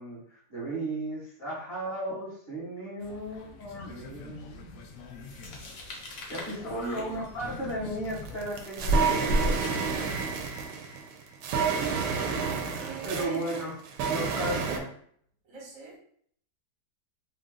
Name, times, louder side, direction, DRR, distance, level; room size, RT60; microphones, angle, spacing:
voice 1, 0.0-4.6 6.3-10.1 10.6-10.7 12.4-13.7 14.1-14.9, right 1 dB, 35° left, 1.9 m, -35 dB
sound 1, 3.0-8.6, left 3 dB, 65° left, 0.9 m, -46 dB
sound 2, 5.2-10.4, equal, 85° left, 1.5 m, -32 dB
voice 2, 7.0-7.3 11.6-13.7 15.4-16.0, right 3 dB, 55° right, 1.6 m, -43 dB
sound 3, 8.1-14.8, right 5 dB, 80° right, 1.2 m, -30 dB
3.7 x 2.5 x 3.7 m
omnidirectional pair, 1.8 m